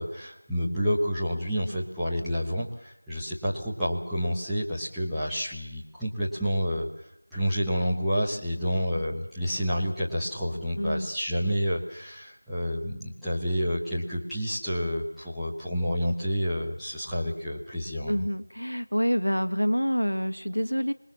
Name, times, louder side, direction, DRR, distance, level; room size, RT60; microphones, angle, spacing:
voice 1, 0.0-6.9 7.3-18.2, equal, ahead, -17 dB, 1.4 m, -29 dB
voice 2, 10.8-11.1 18.1-20.9, equal, 90° left, 8 dB, 1.8 m, -27 dB
27.5 x 21.0 x 7.3 m, 0.82 s
figure-of-eight pair, 175°, 0 cm